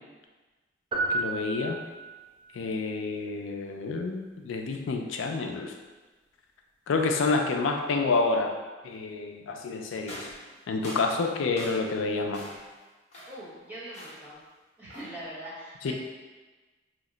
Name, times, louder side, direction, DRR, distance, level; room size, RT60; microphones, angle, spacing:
sound 1, 0.9-2.4, right 2 dB, 25° right, 0.4 m, -31 dB
voice 1, 1.1-1.8 2.5-5.7 6.9-8.5 8.8-10.3 10.7-12.4 15.8-15.9, left 3 dB, 90° left, 3 dB, 0.4 m, -28 dB
sound 2, 10.0-12.0 12.3-12.7 13.1-13.5 13.9-14.4 14.9-15.3, equal, 35° left, 0.8 m, -44 dB
voice 2, 13.3-14.4 14.8-15.9, right 1 dB, 10° right, -10 dB, 0.9 m, -42 dB
2.8 x 2.1 x 3.8 m, 1.3 s
head